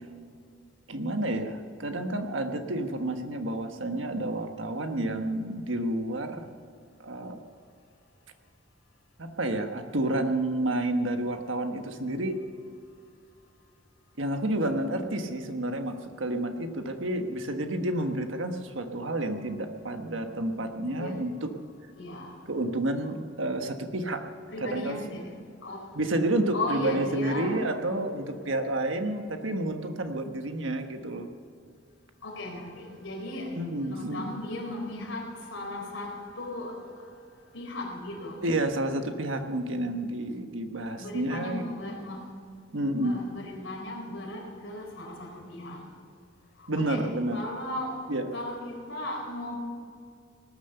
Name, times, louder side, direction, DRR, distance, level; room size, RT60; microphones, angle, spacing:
voice 1, 0.9-6.6 7.0-7.4 9.2-12.4 14.2-21.5 22.5-24.2 24.6-25.2 25.9-31.3 33.5-34.3 38.4-41.7 42.7-43.3 46.7-47.4 48.1-48.2, right 1 dB, 75° right, 6 dB, 1.4 m, -30 dB
voice 2, 22.0-22.3 24.5-25.3 25.6-25.9 26.5-27.6 32.2-33.5 33.8-36.7 37.5-38.4 41.0-42.2 42.7-45.8 46.8-47.9 48.3-49.6, left 1 dB, 75° left, 0 dB, 4.1 m, -36 dB
18.5 x 10.5 x 6.8 m, 2.3 s
head